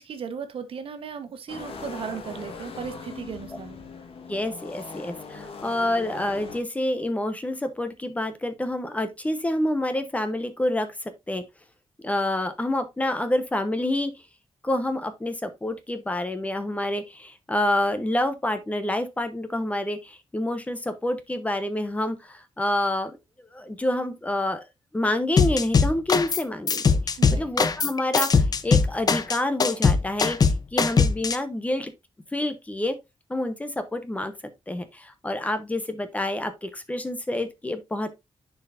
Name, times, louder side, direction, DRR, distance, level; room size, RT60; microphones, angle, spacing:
voice 1, 0.0-3.8 27.2-27.5, right 6 dB, 80° right, 1.2 m, -36 dB
sound 1, 1.5-6.6, left 4 dB, 85° left, 1.5 m, -40 dB
voice 2, 4.3-10.9 11.3-11.4 12.0-14.1 14.6-24.6 24.9-31.9 32.3-33.0 33.3-34.3 34.7-38.1, left 1 dB, 15° left, 1.0 m, -28 dB
sound 2, 25.4-26.4 26.7-31.4, left 5 dB, 45° left, 0.7 m, -20 dB
10.5 x 4.6 x 2.6 m
wide cardioid pair, 150°, 9 cm